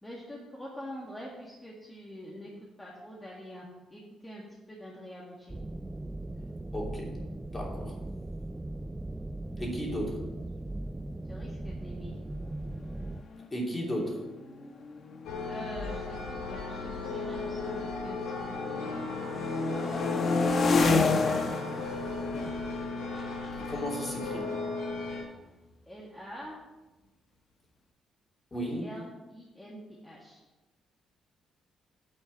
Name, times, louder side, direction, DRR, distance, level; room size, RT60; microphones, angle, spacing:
voice 1, 0.0-2.5 2.8-3.7 3.9-5.6 11.2-12.2 15.4-19.1 19.7-20.2 21.2-21.9 25.9-26.6 28.6-29.0 29.3-30.4, equal, 10° left, -5 dB, 1.8 m, -45 dB
sound 1, 5.5-13.2, right 2 dB, 15° right, 0.3 m, -38 dB
voice 2, 6.7-7.1 7.5-7.9 9.6-10.2 13.5-14.3 23.7-24.5 28.5-28.8, equal, 25° left, -2 dB, 3.0 m, -34 dB
sound 2, 12.7-12.8 13.1-13.4 14.2-18.1 18.5-25.1, left 3 dB, 50° left, 1.1 m, -31 dB
sound 3, 15.2-25.2, left 3 dB, 80° left, 2.2 m, -36 dB
8.8 x 4.5 x 7.5 m, 1.1 s
cardioid pair, 90°, 0 cm